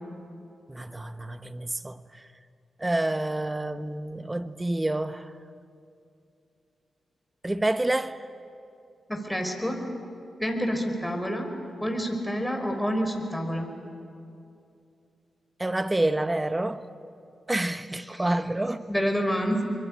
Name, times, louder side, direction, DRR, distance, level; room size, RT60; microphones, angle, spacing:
voice 1, 0.7-2.0 2.8-5.2 7.4-8.2 15.6-16.8 17.5-18.8, right 1 dB, 20° right, 1.2 m, -28 dB
voice 2, 9.1-9.8 10.4-11.5 11.8-13.7 18.1-18.3 18.9-19.6, equal, 5° left, 5.0 m, -28 dB
24.5 x 22.0 x 8.8 m
supercardioid pair, 40°, 0 cm